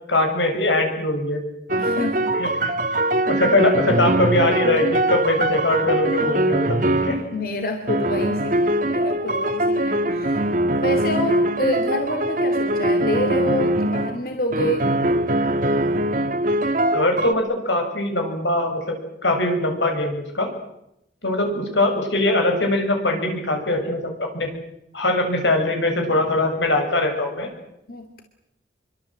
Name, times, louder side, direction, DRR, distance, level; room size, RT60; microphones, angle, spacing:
voice 1, 0.1-1.4 2.4-7.2 16.9-18.9 19.2-20.5 21.2-24.5 24.9-27.5, left 1 dB, 90° left, 4 dB, 7.4 m, -22 dB
sound 1, 1.7-7.3 7.9-14.2 14.5-17.3, right 1 dB, 45° right, 1.7 m, -22 dB
voice 2, 1.8-2.4 7.3-10.5 10.8-14.9 27.9-28.2, equal, 55° left, 5 dB, 2.7 m, -27 dB
26.5 x 24.0 x 7.8 m, 0.82 s
head